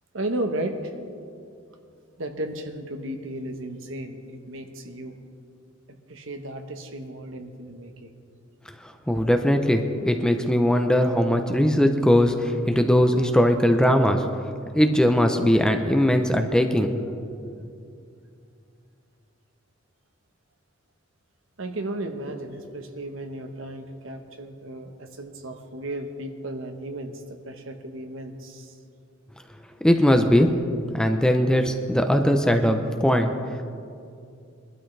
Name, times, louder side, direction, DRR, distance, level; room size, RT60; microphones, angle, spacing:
voice 1, 0.1-0.9 2.2-5.2 6.1-8.1 21.6-28.8, right 1 dB, 70° right, 6 dB, 1.1 m, -34 dB
voice 2, 9.1-14.2 14.7-16.9 17.4-17.5 29.8-30.5 30.9-33.3, equal, 5° left, 5 dB, 0.6 m, -20 dB
21.5 x 12.5 x 3.3 m, 2.4 s
head